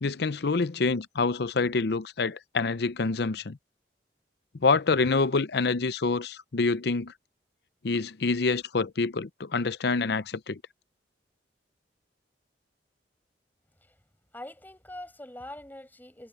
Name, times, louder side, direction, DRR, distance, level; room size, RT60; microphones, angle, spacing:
voice 1, 0.0-3.6 4.6-7.1 7.8-10.6, left 4 dB, 65° left, 0.6 m, -26 dB
voice 2, 14.3-16.3, left 1 dB, 10° left, 6.5 m, -43 dB
head